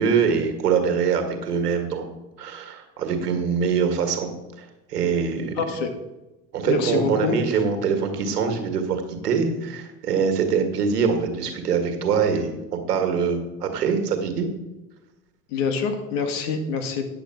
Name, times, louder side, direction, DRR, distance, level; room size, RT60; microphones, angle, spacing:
voice 1, 0.0-4.3 4.6-5.5 6.5-14.5, right 6 dB, 85° right, 6 dB, 1.8 m, -24 dB
voice 2, 5.6-5.9 6.6-7.6 15.5-17.0, left 5 dB, 65° left, 6 dB, 1.9 m, -26 dB
10.0 x 6.7 x 5.8 m, 1.0 s
hypercardioid pair, 75°, 45 cm